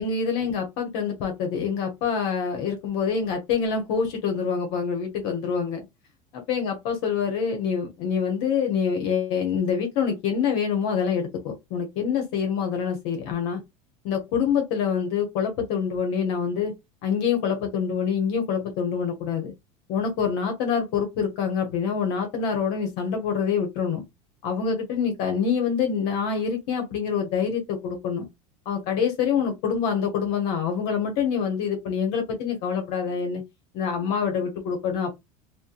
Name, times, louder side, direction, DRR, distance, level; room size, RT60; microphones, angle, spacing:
voice 1, 0.0-5.8 6.3-13.6 14.0-16.7 17.0-19.5 19.9-24.0 24.4-28.3 28.7-33.4 33.7-35.1, left 6 dB, 60° left, 0.9 m, -26 dB
2.6 x 2.1 x 2.5 m
hypercardioid pair, 100°, 20 cm